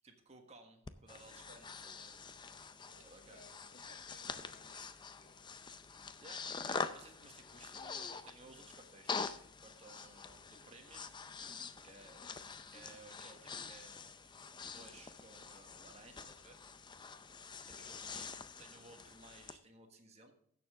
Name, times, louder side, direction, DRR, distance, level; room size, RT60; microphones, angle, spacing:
voice 1, 0.0-2.1 3.0-3.4 6.2-11.1 11.8-12.2 12.7-14.2 14.6-16.6 17.6-20.3, right 3 dB, 30° right, 4 dB, 1.4 m, -59 dB
Breathing, 0.9-19.6, left 5 dB, 20° left, 0.5 m, -46 dB
voice 2, 2.9-5.7 7.7-7.8 12.2-12.5 17.8-18.1, left 2 dB, 50° left, 4 dB, 1.5 m, -64 dB
15.5 x 7.0 x 3.7 m, 0.66 s
head